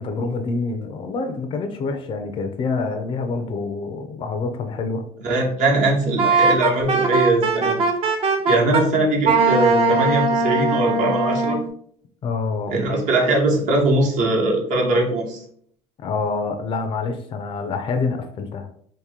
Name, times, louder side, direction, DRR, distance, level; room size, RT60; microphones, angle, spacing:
voice 1, 0.0-5.0 8.7-8.8 12.2-12.7 16.0-18.7, left 4 dB, 40° left, 6 dB, 0.5 m, -26 dB
voice 2, 5.2-7.8 8.5-11.6 12.7-15.4, right 2 dB, 60° right, 0 dB, 1.0 m, -20 dB
Wind instrument woodwind instrument, 6.2-8.8 9.2-11.6, right 3 dB, 45° right, 0.6 m, -20 dB
2.9 x 2.6 x 3.6 m, 0.62 s
supercardioid pair, 105°, 14 cm